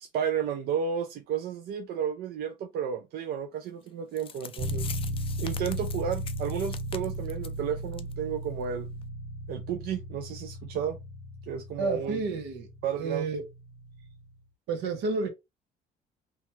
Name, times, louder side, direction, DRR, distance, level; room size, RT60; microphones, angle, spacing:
voice 1, 0.0-4.9 5.4-8.9 9.5-11.0 11.5-12.2 12.8-13.3, right 8 dB, 70° right, 0.4 m, -32 dB
sound 1, 3.9-4.0 4.2-7.6 7.9-8.1 8.4-8.5 9.0-9.1, left 8 dB, 35° left, 0.3 m, -43 dB
sound 2, 4.6-14.3, equal, 30° right, 1.6 m, -36 dB
voice 2, 11.8-12.7 13.0-13.4 14.7-15.3, right 4 dB, 85° right, 0.9 m, -30 dB
2.8 x 2.3 x 3.0 m
cardioid pair, 110°, 17 cm